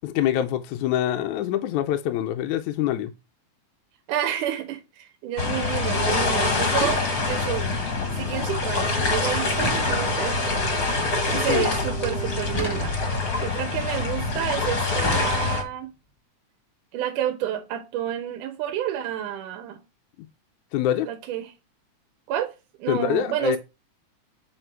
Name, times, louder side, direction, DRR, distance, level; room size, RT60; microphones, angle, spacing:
voice 1, 0.0-3.1 11.3-11.7 20.7-21.1 22.9-23.6, left 11 dB, 75° left, 2.0 m, -25 dB
voice 2, 4.1-7.8 8.1-10.5 11.3-13.0 13.4-15.9 16.9-19.8 21.1-21.5 22.3-22.5 22.8-23.6, right 11 dB, 85° right, 2.4 m, -29 dB
sound 1, 5.4-15.6, left 3 dB, 35° left, 1.7 m, -25 dB
sound 2, 9.6-10.5 12.5-13.2 15.0-15.8, left 1 dB, 10° left, 1.1 m, -32 dB
8.0 x 4.7 x 4.6 m
omnidirectional pair, 3.6 m